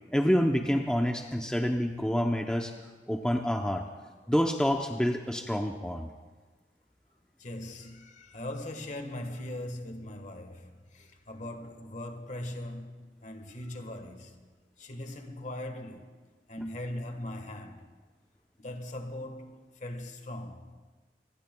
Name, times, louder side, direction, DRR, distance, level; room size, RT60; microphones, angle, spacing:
voice 1, 0.1-2.7 3.1-3.9 4.3-6.1, equal, 5° left, 0.6 m, -27 dB
voice 2, 7.4-16.1 16.5-17.9 18.6-20.7, left 1 dB, 45° left, 1.4 m, -40 dB
26.5 x 19.5 x 2.3 m
head